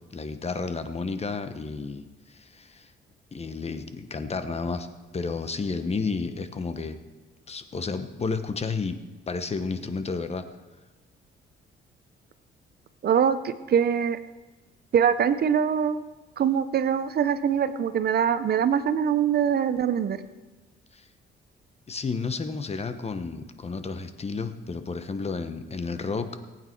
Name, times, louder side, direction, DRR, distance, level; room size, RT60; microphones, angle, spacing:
voice 1, 0.1-2.9 3.3-4.9 5.1-7.0 7.5-9.0 9.3-10.4 20.9-21.1 21.9-26.3, left 4 dB, 30° left, 9 dB, 1.1 m, -31 dB
voice 2, 13.0-14.2 14.9-16.0 16.4-20.2, right 8 dB, 55° right, 13 dB, 0.7 m, -23 dB
19.0 x 9.0 x 4.6 m, 1.2 s
cardioid pair, 90°, 20 cm